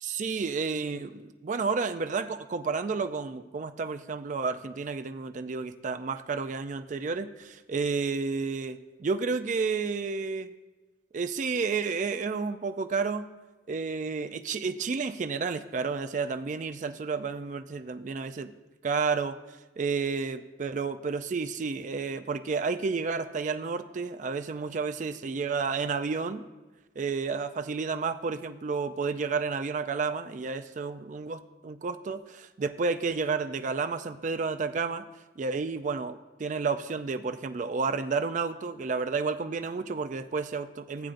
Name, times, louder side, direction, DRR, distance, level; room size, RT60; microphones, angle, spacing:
voice 1, 0.0-10.5 11.1-13.2 13.7-18.5 18.8-19.4 19.8-26.4 27.0-35.0 35.4-41.1, right 4 dB, 40° right, 9 dB, 0.4 m, -31 dB
15.0 x 7.8 x 2.5 m, 1.2 s
head